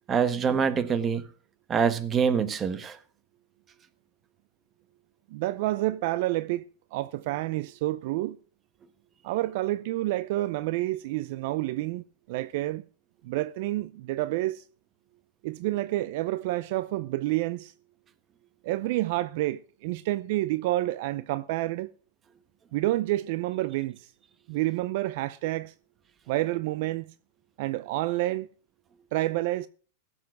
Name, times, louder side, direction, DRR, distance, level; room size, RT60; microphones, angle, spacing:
voice 1, 0.1-1.2 1.7-3.0, right 6 dB, 20° right, 1.2 m, -25 dB
voice 2, 5.3-6.6 6.9-8.4 9.2-12.8 13.2-14.6 15.4-17.7 18.6-21.9 22.7-24.1 24.5-25.7 26.3-27.1 27.6-28.5 29.1-29.7, right 17 dB, 60° right, 0.5 m, -29 dB
16.0 x 7.4 x 6.1 m
supercardioid pair, 140°, 0 cm